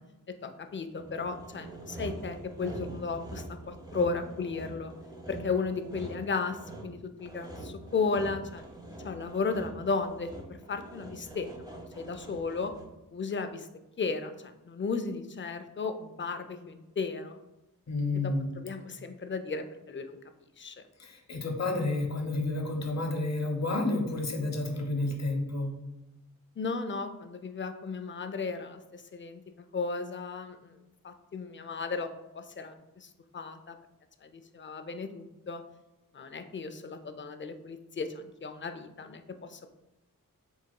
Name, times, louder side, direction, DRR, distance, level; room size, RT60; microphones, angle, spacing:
voice 1, 0.3-4.9 5.3-8.6 9.0-11.5 11.7-12.7 13.1-13.7 14.0-17.4 18.2-18.3 18.6-20.2 20.6-20.8 26.6-29.4 29.7-30.7 31.0-33.8 34.2-35.6 36.1-39.2 39.5-39.7, left 4 dB, 35° left, 8 dB, 0.4 m, -35 dB
Sawing, 1.0-13.0, right 2 dB, 10° right, 0.8 m, -44 dB
voice 2, 17.9-18.5 21.0-25.7, left 2 dB, 50° left, 3 dB, 0.8 m, -30 dB
4.6 x 3.5 x 2.2 m, 0.96 s
wide cardioid pair, 60°, 34 cm